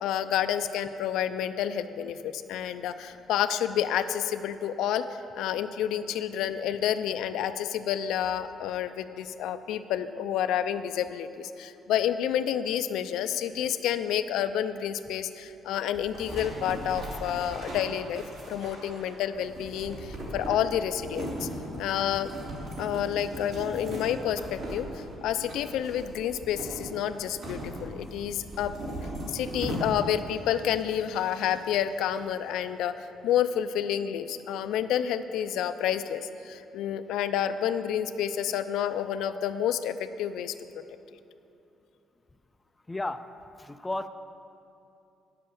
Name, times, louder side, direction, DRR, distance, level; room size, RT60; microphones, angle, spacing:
voice 1, 0.0-5.1 5.4-21.5 21.8-22.3 22.8-28.7 29.3-40.5, left 10 dB, 85° left, 10 dB, 0.4 m, -29 dB
sound 1, 15.9-30.3, right 1 dB, 65° right, 2.8 m, -38 dB
voice 2, 42.9-43.3 43.5-44.1, left 2 dB, 15° left, 9 dB, 0.3 m, -33 dB
9.8 x 7.6 x 6.9 m, 2.7 s
cardioid pair, 140°, 0 cm